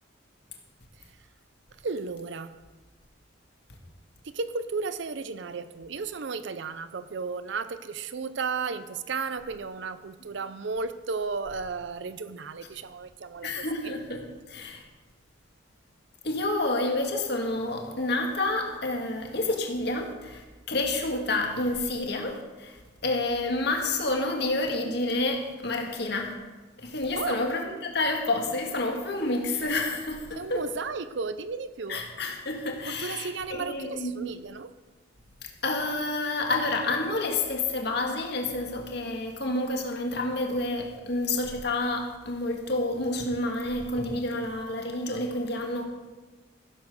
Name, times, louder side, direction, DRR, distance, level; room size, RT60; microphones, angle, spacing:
voice 1, 1.8-2.5 4.2-13.9 27.2-27.4 30.4-32.0 32.9-34.7, right 4 dB, 65° right, 12 dB, 0.5 m, -34 dB
voice 2, 13.4-14.8 16.2-22.8 23.0-26.3 26.8-30.6 31.9-34.1 35.4-45.9, left 2 dB, 55° left, 2 dB, 2.0 m, -29 dB
15.0 x 7.3 x 6.5 m, 1.3 s
head